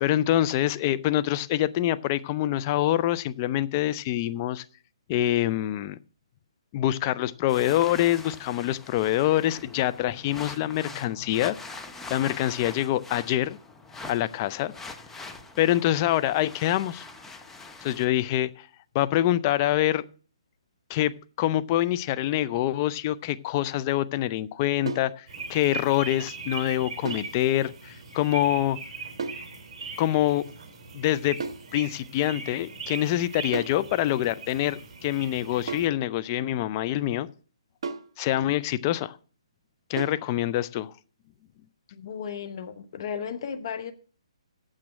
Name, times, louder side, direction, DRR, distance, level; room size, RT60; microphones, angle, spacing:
voice 1, 0.0-4.6 5.1-6.0 6.7-11.6 12.1-13.6 14.1-14.7 15.6-17.1 17.8-18.7 18.9-20.1 20.9-21.1 21.4-28.8 30.0-30.4 30.9-31.4 31.7-37.3 38.2-39.2 39.9-40.9, left 13 dB, 30° left, 0.5 m, -25 dB
sound 1, 7.5-18.1, left 3 dB, 5° left, 0.9 m, -43 dB
sound 2, 24.9-25.2 27.1-27.4 29.2-29.5 31.4-31.7 33.5-33.8 35.7-36.0 37.8-38.2 40.0-40.3, right 4 dB, 55° right, 1.5 m, -34 dB
sound 3, 25.3-35.9, right 4 dB, 40° right, 3.8 m, -40 dB
voice 2, 41.9-43.9, left 7 dB, 50° left, 1.0 m, -34 dB
8.9 x 7.5 x 7.2 m
figure-of-eight pair, 140°, 3 cm